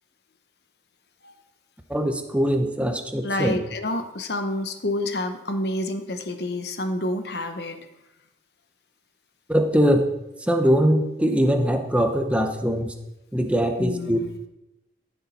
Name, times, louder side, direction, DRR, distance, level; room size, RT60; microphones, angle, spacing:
voice 1, 1.9-3.6 9.5-10.1 10.4-12.9 13.3-14.2, equal, 5° right, 5 dB, 0.8 m, -22 dB
voice 2, 3.2-7.9 13.8-14.4, left 1 dB, 65° left, 8 dB, 1.0 m, -28 dB
14.0 x 7.0 x 4.2 m, 0.93 s
head